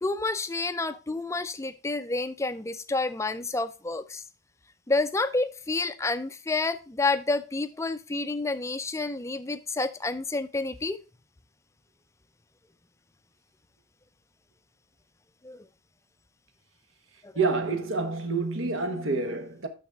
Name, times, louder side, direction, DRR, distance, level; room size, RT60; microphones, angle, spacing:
voice 1, 0.0-4.2 4.9-11.0 15.4-15.7 17.2-17.3, left 3 dB, 15° left, 0.4 m, -29 dB
voice 2, 17.3-19.7, right 3 dB, 75° right, 1.2 m, -28 dB
11.5 x 4.1 x 3.5 m
head